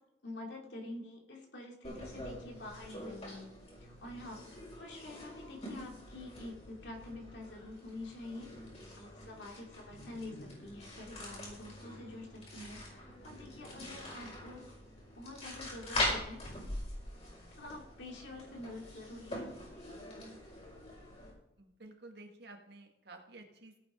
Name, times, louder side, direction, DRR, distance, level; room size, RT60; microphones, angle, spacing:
voice 1, 0.2-3.5 3.8-8.5 9.0-14.8 15.1-16.4 17.6-19.5, left 2 dB, 70° left, 0 dB, 2.8 m, -47 dB
sound 1, 1.8-21.3, left 1 dB, 35° left, 5.6 m, -43 dB
voice 2, 21.6-23.8, right 2 dB, 60° right, 3 dB, 1.9 m, -52 dB
17.0 x 9.0 x 3.9 m, 0.84 s
head